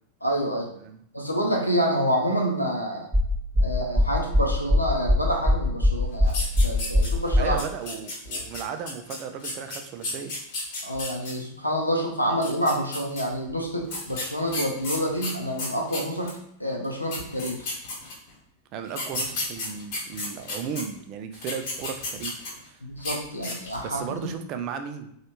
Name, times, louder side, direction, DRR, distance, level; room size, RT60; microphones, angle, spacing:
voice 1, 0.2-0.7 1.1-3.1 3.6-6.4 6.6-7.6 10.8-17.6 22.8-24.3, equal, 85° left, 0 dB, 0.6 m, -27 dB
sound 1, 3.1-7.5, left 1 dB, ahead, 1.0 m, -20 dB
sound 2, 6.2-7.3 7.6-11.3 12.3-13.2 13.9-16.4 16.8-16.9 17.1-18.3 18.9-20.8 21.3-22.7 23.0-23.1 23.4-23.8, left 2 dB, 50° left, 1.2 m, -33 dB
voice 2, 7.4-10.4 18.7-22.3 22.7-22.8 23.8-25.1, right 7 dB, 40° right, 7 dB, 0.3 m, -35 dB
3.0 x 2.3 x 2.9 m, 0.71 s
figure-of-eight pair, 90°, 0 cm